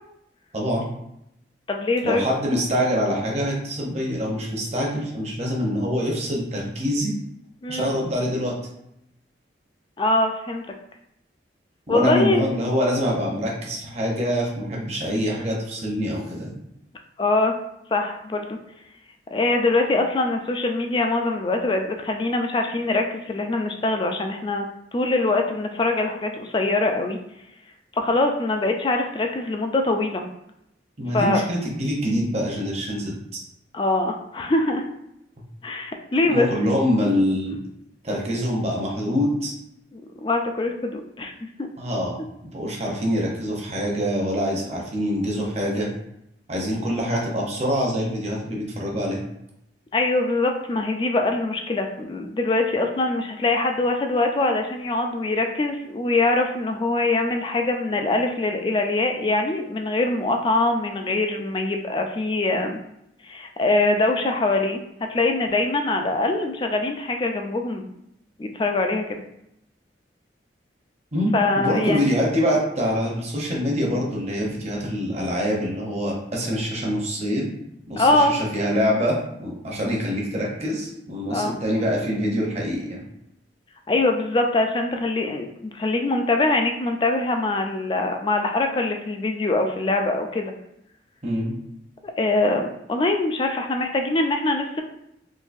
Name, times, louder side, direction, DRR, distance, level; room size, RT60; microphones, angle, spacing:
voice 1, 0.5-0.9 2.0-7.1 7.7-8.6 11.9-16.5 31.0-33.4 35.4-35.5 36.3-37.6 38.0-39.5 41.8-45.9 46.5-49.2 71.1-77.5 77.9-83.0 91.2-91.5, equal, 35° right, -2 dB, 0.8 m, -25 dB
voice 2, 1.7-2.2 7.6-7.9 10.0-10.6 11.9-12.7 17.2-17.5 17.9-18.6 19.3-24.6 24.9-27.2 27.9-30.2 31.1-31.4 33.7-34.8 35.6-36.5 39.9-41.3 41.6-41.7 49.9-62.8 63.2-64.8 65.1-67.9 68.4-69.2 71.3-72.1 78.0-78.4 81.3-81.6 83.9-90.5 92.0-94.8, left 2 dB, 25° left, 4 dB, 0.3 m, -23 dB
3.8 x 2.6 x 2.6 m, 0.81 s
head